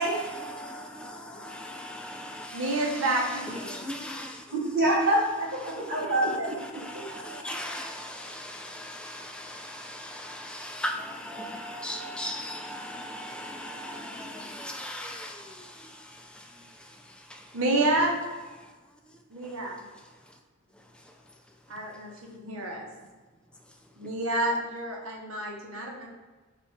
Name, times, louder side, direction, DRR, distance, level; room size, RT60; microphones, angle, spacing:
voice 1, 0.0-3.2 3.6-4.4 5.6-6.2 6.6-17.5 19.4-19.5, equal, 5° left, 0.3 m, -39 dB
voice 2, 2.5-3.9 5.8-6.5 6.9-7.1 17.5-18.2 19.3-19.8 21.7-22.1 22.4-22.9 24.0-26.1, right 2 dB, 75° right, 0.8 m, -29 dB
voice 3, 4.5-6.5, right 1 dB, 50° right, 1.4 m, -26 dB
5.1 x 2.4 x 3.8 m
head